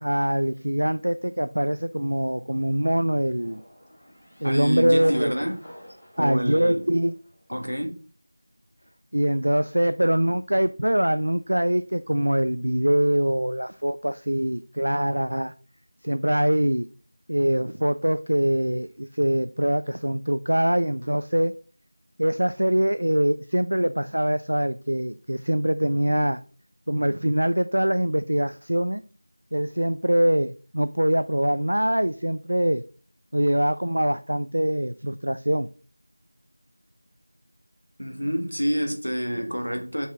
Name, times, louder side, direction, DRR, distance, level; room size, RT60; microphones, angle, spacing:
voice 1, 0.0-3.6 4.4-5.3 6.2-7.1 9.1-15.5 16.0-16.9 17.3-21.5 22.2-26.4 26.9-29.0 29.5-32.8 33.3-35.7, equal, 70° right, 0.4 m, -23 dB
sound 1, 3.4-7.4, equal, 5° left, 2.7 m, -47 dB
voice 2, 4.4-5.6 6.2-6.8 7.5-8.0 38.0-40.1, equal, 85° right, 1.7 m, -27 dB
6.3 x 5.5 x 3.6 m
figure-of-eight pair, 170°, 0 cm